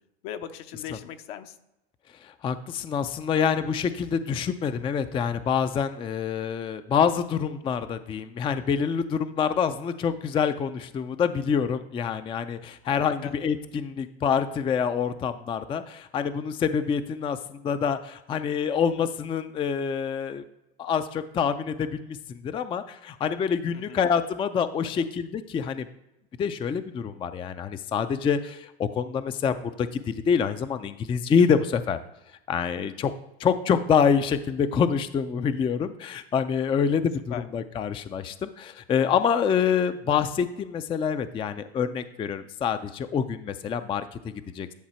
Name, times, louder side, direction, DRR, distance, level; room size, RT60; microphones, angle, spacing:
voice 1, 0.2-1.5 12.8-13.3 23.7-24.0 37.3-37.5, left 10 dB, 65° left, 8 dB, 0.9 m, -39 dB
voice 2, 2.2-20.4 20.8-25.9 26.4-32.0 32.5-33.1 33.4-44.7, left 7 dB, 15° left, 11 dB, 0.3 m, -26 dB
10.5 x 3.9 x 4.4 m, 0.90 s
hypercardioid pair, 95°, 32 cm